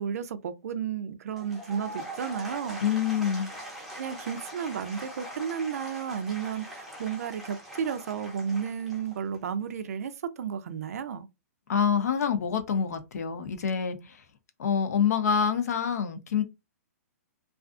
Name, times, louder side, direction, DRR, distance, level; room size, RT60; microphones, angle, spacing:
voice 1, 0.0-2.8 4.0-10.1 10.4-11.3, right 7 dB, 65° right, 0.4 m, -33 dB
Applause / Crowd, 1.3-9.5, right 1 dB, ahead, 0.6 m, -42 dB
voice 2, 2.8-3.5 11.7-14.2 14.6-16.4, left 7 dB, 70° left, 0.6 m, -26 dB
2.4 x 2.4 x 2.4 m
hypercardioid pair, 145°, 9 cm